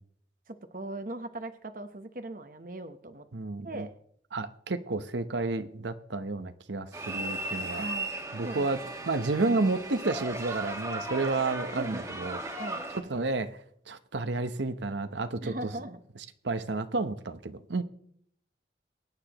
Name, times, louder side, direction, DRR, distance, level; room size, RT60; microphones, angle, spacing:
voice 1, 0.5-3.3 3.6-3.9 7.8-8.1 8.4-8.7 9.0-9.6 11.7-12.1 12.6-12.8 15.4-16.0, right 2 dB, 50° right, 0.9 m, -39 dB
voice 2, 3.3-3.9 4.3-7.9 8.3-12.4 13.1-13.6 13.9-15.7 16.4-17.8, right 3 dB, 85° right, 0.9 m, -31 dB
sound 1, 6.9-13.0, right 2 dB, 15° right, 1.5 m, -36 dB
23.0 x 9.8 x 3.0 m
head